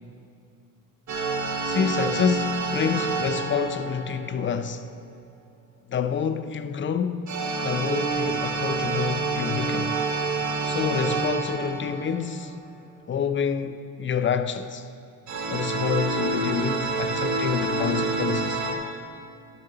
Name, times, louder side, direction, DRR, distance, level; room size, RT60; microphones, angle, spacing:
sound 1, 1.1-4.9 7.3-12.7 15.3-18.7, right 3 dB, 40° right, 1.2 m, -28 dB
voice 1, 1.6-4.9 5.9-7.4 7.6-10.0 10.6-12.5 13.1-14.9 15.5-18.6, left 7 dB, 30° left, 0.5 m, -28 dB
11.0 x 6.9 x 3.9 m
supercardioid pair, 70°, 42 cm